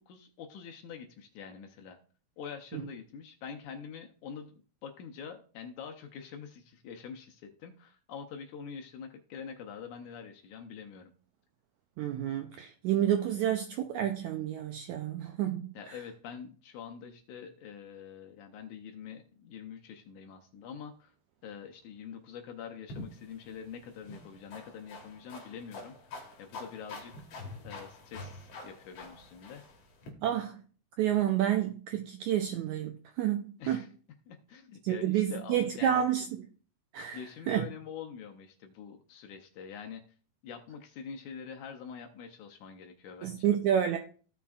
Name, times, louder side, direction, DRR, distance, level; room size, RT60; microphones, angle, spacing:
voice 1, 0.0-2.0 2.4-4.5 4.8-11.1 15.8-21.1 21.4-26.0 26.4-27.4 27.6-29.6 33.6-33.9 34.3-36.0 37.1-40.0 40.4-43.5, left 7 dB, 75° left, 1.9 m, -45 dB
voice 2, 12.0-16.0 30.2-30.6 31.0-33.8 34.8-36.5 36.9-37.6 43.2-44.0, right 10 dB, 80° right, 1.7 m, -30 dB
sound 1, 22.9-30.1, left 2 dB, 55° left, 2.4 m, -46 dB
15.5 x 5.9 x 2.4 m
omnidirectional pair, 4.0 m